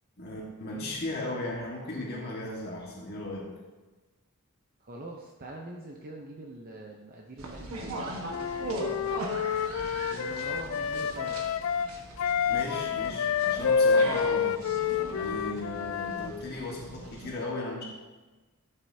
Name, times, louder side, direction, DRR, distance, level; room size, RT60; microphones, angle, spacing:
voice 1, 0.2-3.5 12.5-14.5 15.1-17.8, left 2 dB, 45° left, -3 dB, 1.7 m, -36 dB
voice 2, 4.8-9.4 10.1-11.4, right 2 dB, 40° right, 0 dB, 0.8 m, -44 dB
sound 1, 7.4-17.3, right 1 dB, 80° right, 1.4 m, -40 dB
Wind instrument woodwind instrument, 8.3-16.3, left 6 dB, 65° left, 0.3 m, -28 dB
12.5 x 7.9 x 2.8 m, 1.2 s
head